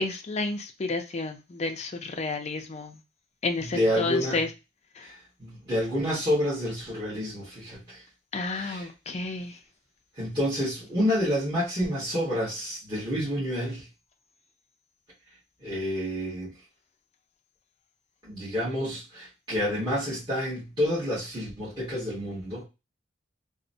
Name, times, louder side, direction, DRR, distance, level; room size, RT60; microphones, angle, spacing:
voice 1, 0.0-3.0 3.4-4.5 5.0-5.1 8.3-9.6, left 3 dB, 35° left, 0.4 m, -31 dB
voice 2, 3.6-4.4 5.0-8.0 8.5-8.9 10.2-13.9 15.6-16.5 18.2-22.6, equal, 25° right, 1.3 m, -29 dB
3.0 x 2.1 x 2.6 m
head